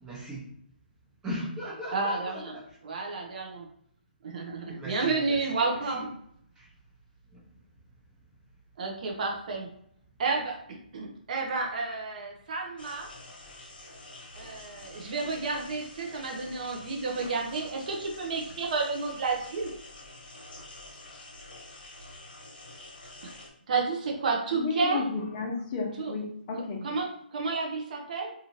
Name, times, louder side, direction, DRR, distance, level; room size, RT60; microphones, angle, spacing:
voice 1, 0.0-0.4 1.2-2.6 4.8-6.1 6.6-6.7, equal, 15° right, -5 dB, 1.0 m, -38 dB
voice 2, 1.9-2.5 2.8-3.7 4.2-6.1 8.8-9.7 10.2-10.6 10.9-13.1 14.3-19.7 23.2-23.4 23.7-25.0 26.0-26.1 26.8-28.3, right 4 dB, 50° right, 1 dB, 0.6 m, -31 dB
sound 1, 12.8-23.5, left 2 dB, 70° left, 1.0 m, -47 dB
voice 3, 24.5-26.8, left 4 dB, 30° left, -2 dB, 0.9 m, -32 dB
2.9 x 2.5 x 2.8 m, 0.68 s
hypercardioid pair, 145°, 5 cm